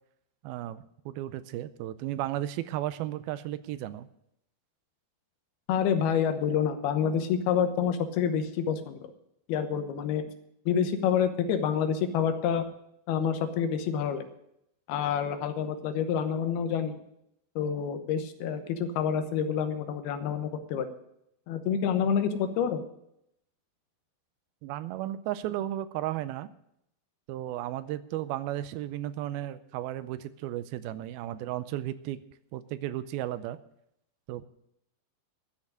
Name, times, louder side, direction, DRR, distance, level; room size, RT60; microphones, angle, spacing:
voice 1, 0.4-4.1 24.6-26.5 27.3-32.2 32.5-33.6 34.3-34.4, right 13 dB, 85° right, 14 dB, 2.5 m, -34 dB
voice 2, 5.7-9.0 9.5-10.2 10.7-12.6 13.1-14.2 14.9-17.0 17.6-20.9 21.5-22.8, left 7 dB, 85° left, 8 dB, 3.0 m, -28 dB
13.0 x 6.7 x 9.7 m, 0.78 s
omnidirectional pair, 4.3 m